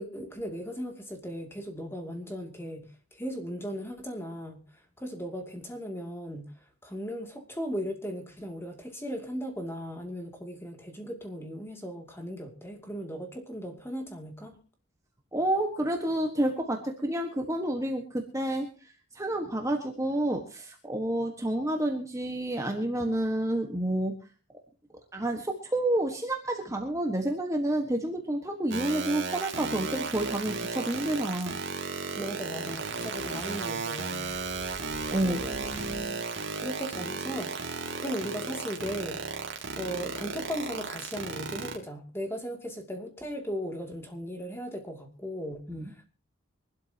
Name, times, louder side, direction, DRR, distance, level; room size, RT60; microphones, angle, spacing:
voice 1, 0.0-4.6 5.0-6.5 6.8-14.5 32.2-34.3 35.2-36.2 36.5-46.1, equal, 10° left, 4 dB, 2.5 m, -37 dB
voice 2, 15.3-24.1 25.1-31.6 35.1-35.4 45.7-45.9, right 1 dB, 15° right, 3 dB, 1.4 m, -29 dB
sound 1, 28.7-41.8, right 4 dB, 60° right, 2.8 m, -34 dB
sound 2, 34.2-36.5, right 1 dB, 30° right, 4.3 m, -45 dB
24.5 x 12.0 x 2.9 m, 0.34 s
head